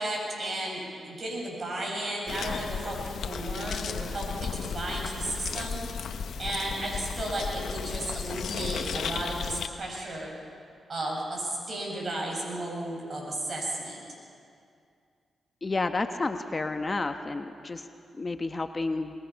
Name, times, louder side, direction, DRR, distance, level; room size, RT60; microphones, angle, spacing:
voice 1, 0.0-5.8 6.4-10.3 10.9-14.0, right 1 dB, 50° right, -1 dB, 7.2 m, -34 dB
sound 1, 2.3-9.7, left 6 dB, 75° left, 1.0 m, -34 dB
voice 2, 15.6-17.9 18.1-19.1, left 3 dB, 35° left, 7 dB, 1.1 m, -30 dB
22.5 x 20.5 x 5.8 m, 2.4 s
cardioid pair, 60°, 0 cm